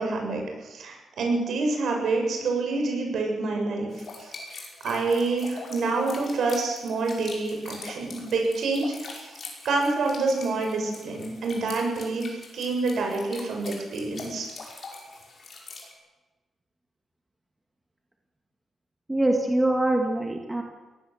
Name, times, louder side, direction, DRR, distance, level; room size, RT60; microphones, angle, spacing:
voice 1, 0.0-3.9 4.2-4.3 4.8-9.1 9.6-12.3 12.5-14.5, right 3 dB, 65° right, 2 dB, 7.1 m, -27 dB
sound 1, 3.9-15.9, left 3 dB, 35° left, 5.6 m, -43 dB
voice 2, 19.1-20.6, right 1 dB, 10° right, 2 dB, 1.9 m, -23 dB
23.0 x 18.0 x 7.9 m, 1.2 s
wide cardioid pair, 180°, 0 cm